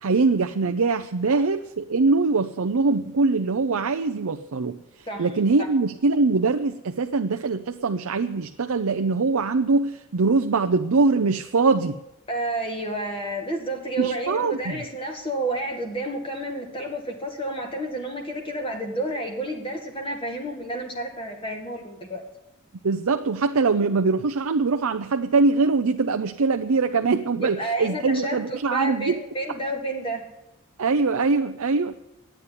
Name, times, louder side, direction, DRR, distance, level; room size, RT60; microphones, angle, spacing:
voice 1, 0.0-11.9 14.0-14.8 22.8-29.2 30.8-32.0, right 3 dB, 75° right, 7 dB, 0.6 m, -22 dB
voice 2, 12.3-22.2 27.4-30.2, right 1 dB, 25° left, 2 dB, 2.0 m, -30 dB
11.0 x 9.2 x 9.9 m, 0.90 s
head